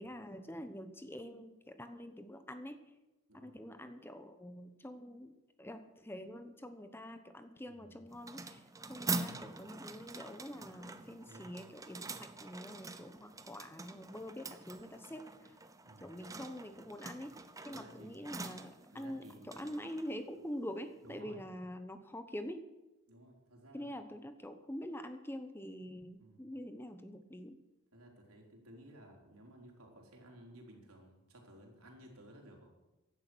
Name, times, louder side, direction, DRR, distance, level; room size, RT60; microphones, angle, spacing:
voice 1, 0.0-2.8 3.3-5.3 5.6-15.6 16.0-17.3 17.6-22.6 23.7-27.6, equal, 10° left, 9 dB, 0.9 m, -45 dB
voice 2, 7.7-8.0 9.2-9.5 11.0-11.5 15.8-16.1 17.7-18.2 18.9-19.6 21.0-21.4 23.1-23.9 26.2-26.5 27.9-32.7, right 1 dB, 90° right, 0 dB, 4.0 m, -56 dB
sound 1, 8.1-21.2, right 3 dB, 15° right, 0.7 m, -45 dB
16.0 x 11.5 x 6.2 m, 1.0 s
head